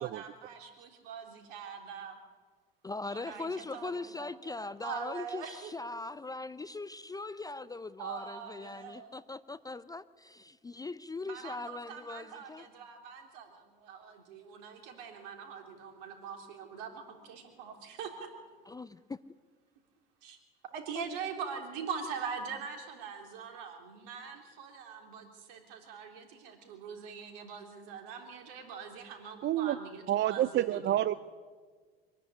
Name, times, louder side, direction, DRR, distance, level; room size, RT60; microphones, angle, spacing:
voice 1, 0.0-2.2 3.1-5.7 7.1-7.2 8.0-9.2 11.2-18.3 20.2-20.4 20.7-31.0, right 6 dB, 65° right, 4 dB, 3.7 m, -43 dB
voice 2, 2.8-12.7 18.7-19.2 20.9-21.1, left 3 dB, 15° left, 16 dB, 0.5 m, -40 dB
voice 3, 29.4-29.8 30.1-31.2, right 13 dB, 40° right, 16 dB, 0.6 m, -28 dB
24.0 x 11.0 x 9.9 m, 1.5 s
hypercardioid pair, 75°, 29 cm